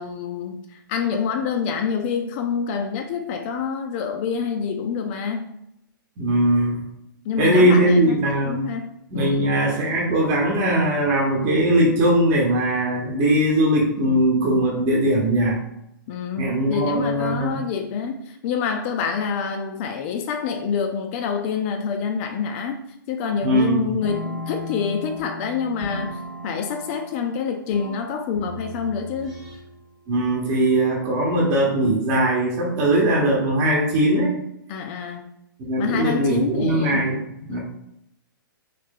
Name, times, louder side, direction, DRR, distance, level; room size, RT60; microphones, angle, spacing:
voice 1, 0.0-5.5 7.3-9.5 16.1-22.8 23.1-29.4 34.7-35.3 35.8-37.1 37.5-37.6, left 6 dB, 35° left, 4 dB, 0.4 m, -27 dB
voice 2, 6.2-6.8 7.4-8.7 9.1-15.6 16.4-17.6 23.4-23.9 30.1-34.4 35.6-37.6, right 1 dB, 35° right, -2 dB, 1.0 m, -20 dB
sound 1, 24.0-29.9, equal, ahead, 0.9 m, -37 dB
3.1 x 2.8 x 3.6 m, 0.79 s
hypercardioid pair, 130°, 12 cm